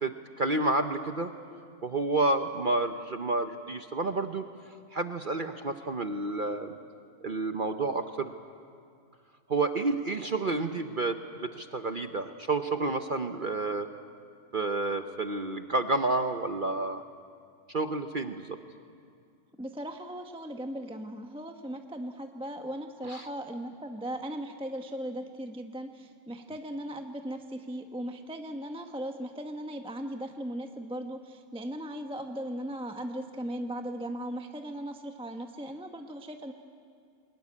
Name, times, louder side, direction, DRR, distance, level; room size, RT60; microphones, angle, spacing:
voice 1, 0.0-1.3 1.8-4.4 4.9-6.8 7.2-8.3 9.5-13.9 14.5-17.0 17.7-18.6 23.1-23.3, right 2 dB, 45° right, 7 dB, 0.8 m, -30 dB
voice 2, 19.6-36.5, right 1 dB, 5° right, 5 dB, 0.8 m, -38 dB
22.0 x 20.5 x 9.7 m, 2.3 s
omnidirectional pair, 1.6 m